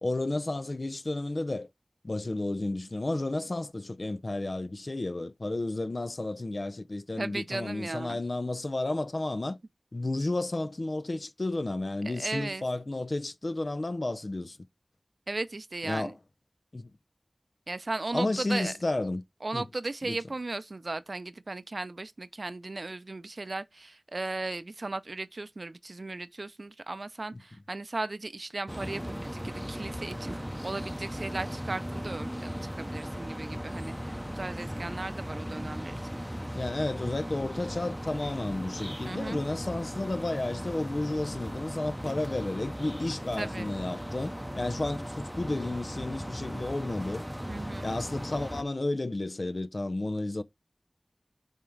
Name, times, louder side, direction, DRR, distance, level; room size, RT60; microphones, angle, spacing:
voice 1, 0.0-1.7 2.0-9.6 9.9-14.6 15.8-16.2 16.7-16.9 18.1-19.2 19.5-19.6 20.0-20.2 36.5-47.3 47.8-50.4, left 2 dB, 70° left, 0.7 m, -32 dB
voice 2, 7.2-8.2 12.1-12.7 15.3-16.1 17.7-18.7 19.4-36.2 39.0-39.4 43.4-43.7 47.5-47.9, right 2 dB, 80° right, 0.5 m, -36 dB
sound 1, 28.7-48.6, equal, 5° right, 0.7 m, -37 dB
8.9 x 3.7 x 4.5 m
wide cardioid pair, 40°, 0 cm